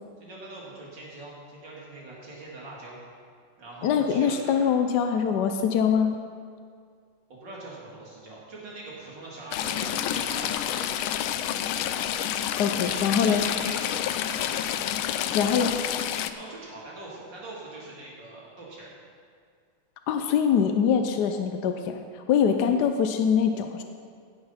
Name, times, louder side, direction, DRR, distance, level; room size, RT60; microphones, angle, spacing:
voice 1, 0.2-3.0 3.6-4.7 7.3-11.1 12.8-14.0 14.3-14.6 15.3-15.4 16.0-18.9, right 2 dB, 60° right, -5 dB, 3.2 m, -42 dB
voice 2, 3.8-6.2 12.6-13.4 15.3-15.7 20.1-22.0 22.3-23.8, left 7 dB, 70° left, 6 dB, 1.0 m, -23 dB
Stream / Trickle dribble, 9.5-16.3, left 10 dB, 90° left, 1.4 m, -29 dB
16.5 x 6.2 x 5.6 m, 2.1 s
omnidirectional pair, 2.2 m